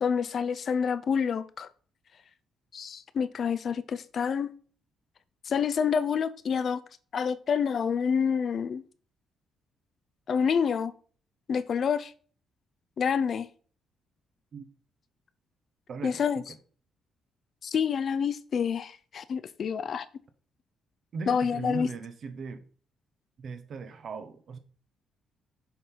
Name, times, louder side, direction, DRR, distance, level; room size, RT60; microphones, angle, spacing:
voice 1, 0.0-1.7 2.7-4.5 5.4-6.8 7.1-8.8 10.3-10.9 11.5-12.1 13.0-13.5 16.0-16.4 17.6-20.1 21.3-21.9, left 6 dB, 55° left, 0.5 m, -28 dB
voice 2, 15.9-16.4 21.1-22.6 23.4-24.6, right 5 dB, 55° right, 1.1 m, -38 dB
7.1 x 3.9 x 4.5 m
cardioid pair, 90°, 0 cm